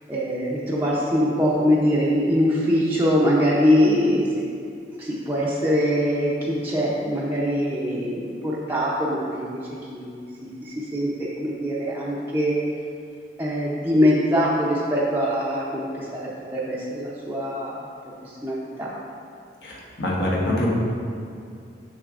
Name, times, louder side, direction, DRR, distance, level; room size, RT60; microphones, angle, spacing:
voice 1, 0.1-4.3 5.0-9.6 9.9-12.5 13.4-17.9 18.2-18.9, equal, 10° right, -7 dB, 0.6 m, -23 dB
voice 2, 19.6-20.7, left 1 dB, 65° left, -4 dB, 1.1 m, -24 dB
6.5 x 6.2 x 2.5 m, 2.4 s
head